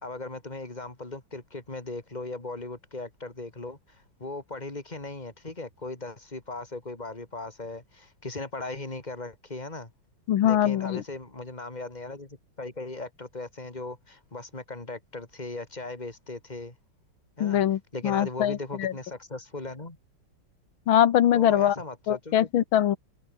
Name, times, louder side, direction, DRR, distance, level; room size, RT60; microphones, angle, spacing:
voice 1, 0.0-9.9 10.4-16.8 17.4-17.6 17.9-20.0 21.3-22.5, left 2 dB, 20° left, 3.4 m, -38 dB
voice 2, 10.3-11.0 17.4-18.9 20.9-21.8 22.1-23.0, left 11 dB, 85° left, 1.9 m, -23 dB
omnidirectional pair, 2.2 m